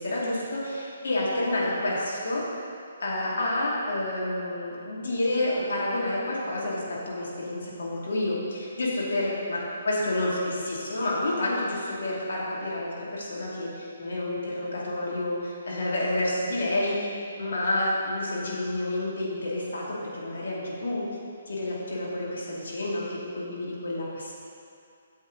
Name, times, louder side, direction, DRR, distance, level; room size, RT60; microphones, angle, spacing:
voice 1, 0.0-2.4 3.0-17.1 17.4-19.8 20.1-21.0 21.5-24.3, left 1 dB, 65° left, -5 dB, 2.1 m, -29 dB
8.9 x 7.1 x 3.7 m, 2.5 s
figure-of-eight pair, 135°, 0 cm